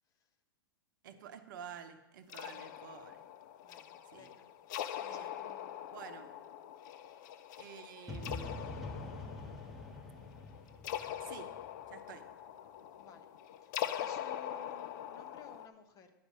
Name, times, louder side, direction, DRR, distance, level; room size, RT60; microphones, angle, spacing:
voice 1, 1.0-3.2 4.1-4.3 5.1-5.3 5.9-6.3 7.6-8.5 11.2-11.5 11.9-12.2, right 8 dB, 60° right, 9 dB, 0.8 m, -50 dB
sound 1, 2.3-15.7, left 11 dB, 55° left, 0.6 m, -43 dB
voice 2, 3.6-4.5 5.0-5.8 13.0-13.3 13.6-16.1, left 6 dB, 30° left, 7 dB, 0.9 m, -56 dB
sound 2, 8.1-11.9, left 2 dB, ahead, 1.4 m, -45 dB
10.5 x 5.3 x 6.1 m, 0.98 s
hypercardioid pair, 100°, 12 cm